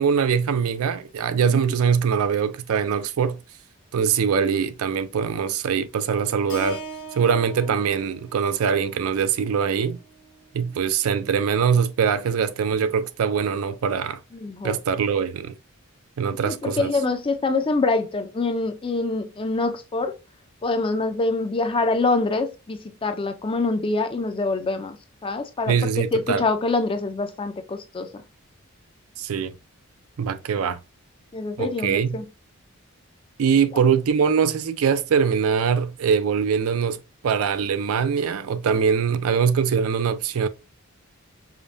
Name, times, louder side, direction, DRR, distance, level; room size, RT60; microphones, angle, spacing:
voice 1, 0.0-3.4 3.9-6.8 7.1-10.0 10.5-14.2 14.6-15.5 16.2-16.9 25.7-26.4 29.2-29.5 30.2-30.8 31.6-32.2 33.4-40.5, right 6 dB, 70° right, 0.4 m, -22 dB
Keyboard (musical), 6.5-10.7, right 3 dB, 60° left, 1.1 m, -41 dB
voice 2, 14.3-14.8 16.4-20.1 20.6-25.0 25.2-28.2 31.3-32.2, left 3 dB, 25° left, 0.4 m, -25 dB
5.0 x 2.2 x 2.6 m
head